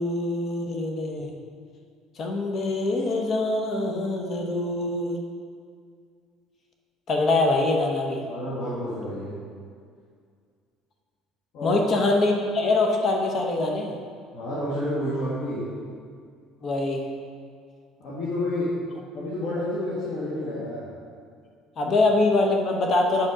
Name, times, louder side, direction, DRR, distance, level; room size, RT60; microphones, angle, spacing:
voice 1, 0.0-1.3 2.2-5.2 7.1-8.2 11.6-14.0 16.6-17.0 21.8-23.3, left 2 dB, 40° left, 1 dB, 0.9 m, -24 dB
voice 2, 8.3-9.4 11.5-11.8 14.3-15.8 18.0-18.7 19.1-20.9, left 1 dB, 60° left, -9 dB, 2.0 m, -29 dB
7.6 x 5.9 x 5.0 m, 2.2 s
cardioid pair, 130°, 0 cm